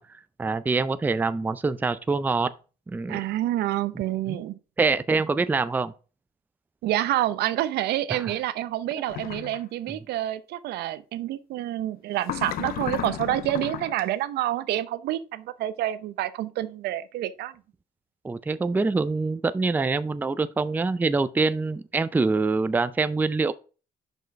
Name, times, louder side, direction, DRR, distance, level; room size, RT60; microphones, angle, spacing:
voice 1, 0.0-2.5 2.9-3.2 4.3-4.4 4.8-5.9 8.1-8.3 9.9-10.0 18.2-23.5, right 3 dB, 10° right, 0.4 m, -25 dB
voice 2, 3.1-4.5 6.8-17.5, right 13 dB, 75° right, 0.6 m, -28 dB
sound 1, 9.1-9.6 12.2-14.0, left 12 dB, 65° left, 0.6 m, -33 dB
5.9 x 5.4 x 4.7 m
cardioid pair, 110°, 17 cm